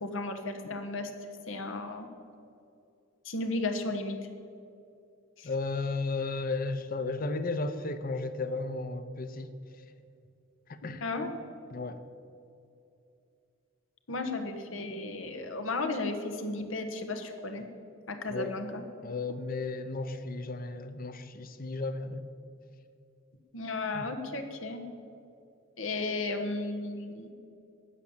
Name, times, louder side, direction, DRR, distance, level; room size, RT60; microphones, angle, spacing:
voice 1, 0.0-1.1 1.5-2.1 3.2-4.2 5.4-5.5 11.0-11.4 14.1-17.6 18.1-18.8 23.5-24.8 25.8-27.3, left 2 dB, 80° left, 6 dB, 1.3 m, -34 dB
voice 2, 5.4-9.5 10.7-11.0 11.7-12.0 18.3-18.6 19.0-22.3 23.9-24.1, left 3 dB, 45° left, 11 dB, 0.8 m, -34 dB
12.5 x 8.8 x 7.2 m, 2.6 s
head